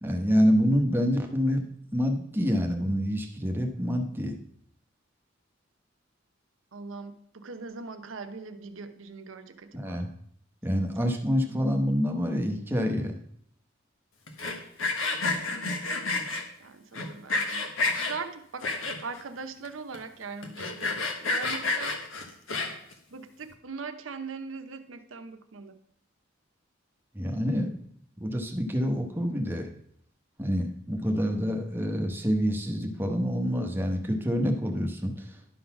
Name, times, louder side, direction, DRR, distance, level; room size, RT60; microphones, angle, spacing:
voice 1, 0.0-1.7 1.9-4.4 9.7-10.1 10.6-13.2 27.1-27.7 28.2-29.7 30.4-35.3, equal, 10° right, 2 dB, 1.0 m, -27 dB
voice 2, 6.7-10.0 15.4-16.1 16.6-22.0 23.1-25.8, right 4 dB, 90° right, 8 dB, 0.8 m, -41 dB
Sawing, 14.3-16.4 16.9-18.1 18.6-19.2 19.6-19.7 19.9-20.0 20.4-22.9, left 3 dB, 80° left, 1.3 m, -29 dB
11.0 x 3.9 x 5.9 m, 0.67 s
head